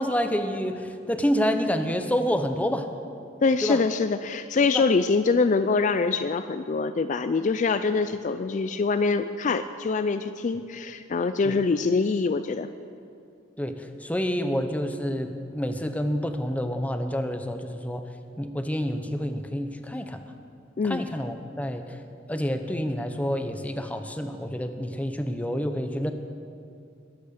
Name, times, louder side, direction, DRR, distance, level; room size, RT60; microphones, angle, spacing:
voice 1, 0.0-2.9 3.6-3.8 4.7-4.8 11.4-11.6 13.6-18.0 18.4-20.2 20.8-22.0 22.3-26.1, equal, 10° left, 7 dB, 0.7 m, -28 dB
voice 2, 3.4-12.7 20.8-21.0, left 4 dB, 40° left, 10 dB, 0.4 m, -24 dB
21.0 x 8.2 x 6.5 m, 2.5 s
head